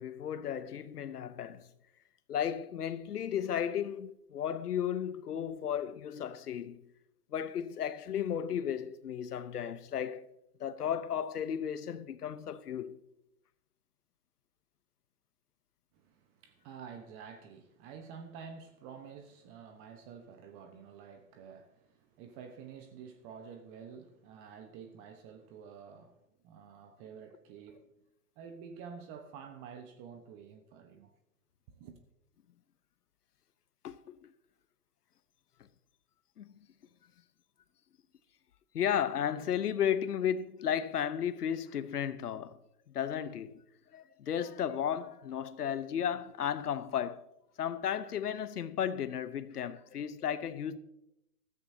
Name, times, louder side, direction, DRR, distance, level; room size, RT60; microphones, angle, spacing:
voice 1, 0.0-1.6 2.3-6.8 7.3-10.2 10.6-13.0 33.8-34.3 36.4-36.5 38.7-42.6 42.9-43.6 43.9-47.2 47.6-50.8, left 9 dB, 80° left, 1.0 m, -34 dB
voice 2, 15.9-27.9 28.4-31.1 31.7-32.0, right 6 dB, 25° right, 1.1 m, -49 dB
15.5 x 14.0 x 2.8 m
hypercardioid pair, 130°, 46 cm